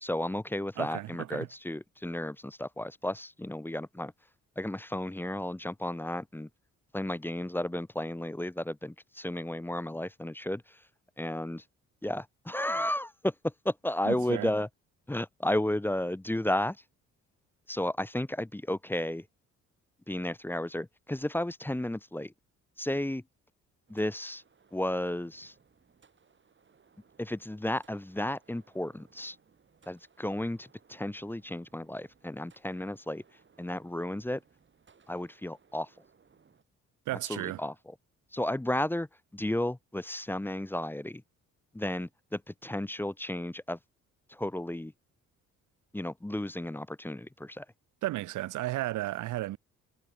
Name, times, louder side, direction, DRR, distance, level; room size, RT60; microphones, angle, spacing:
voice 1, 0.0-4.1 4.6-6.5 6.9-10.6 11.2-11.6 12.0-14.7 15.1-16.8 17.7-19.2 20.1-22.3 22.8-23.2 23.9-24.4 24.7-25.5 27.2-29.4 29.9-33.2 33.6-34.4 35.1-35.9 37.3-37.7 38.3-39.1 39.3-41.2 41.7-43.8 44.3-44.9 45.9-47.6, left 1 dB, 5° left, 1.0 m, -33 dB
voice 2, 0.8-1.5 14.0-14.5 37.1-37.6 48.0-49.6, right 16 dB, 75° right, 0.8 m, -34 dB
sound 1, 23.9-36.6, right 5 dB, 40° right, 7.7 m, -65 dB
cardioid pair, 90°, 30 cm